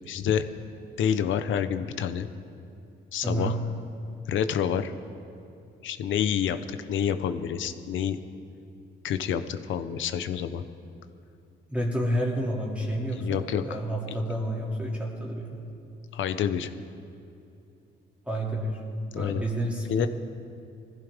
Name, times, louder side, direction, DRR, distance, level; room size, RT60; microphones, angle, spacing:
voice 1, 0.1-0.4 1.0-2.3 3.1-3.6 4.3-4.9 5.8-8.2 9.0-10.6 13.2-13.6 16.1-16.7 19.1-19.4 19.9-20.1, left 8 dB, 75° left, 10 dB, 0.8 m, -28 dB
voice 2, 3.2-3.6 11.7-15.6 18.2-18.8 19.1-20.1, right 1 dB, 5° right, -4 dB, 2.7 m, -29 dB
21.5 x 15.0 x 3.6 m, 2.6 s
cardioid pair, 90°, 20 cm